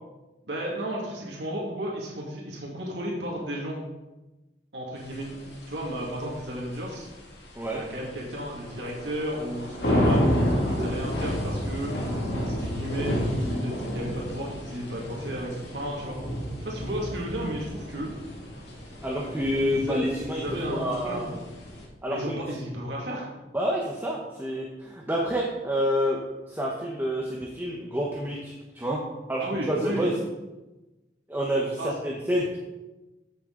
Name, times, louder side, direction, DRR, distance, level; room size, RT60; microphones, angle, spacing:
voice 1, 0.5-3.8 4.7-5.3 5.7-7.1 7.7-11.9 12.4-16.2 16.6-18.1 19.1-19.3 19.7-20.0 20.2-21.4 22.1-23.3 29.4-30.1 31.8-31.9, equal, 75° right, -3 dB, 2.2 m, -33 dB
sound 1, 5.0-21.8, equal, 75° left, 2.3 m, -31 dB
voice 2, 19.0-21.3 22.0-22.6 23.5-26.2 26.5-29.0 29.3-30.1 31.3-32.6, equal, 10° right, -2 dB, 1.0 m, -28 dB
14.0 x 6.5 x 3.9 m, 1.1 s
head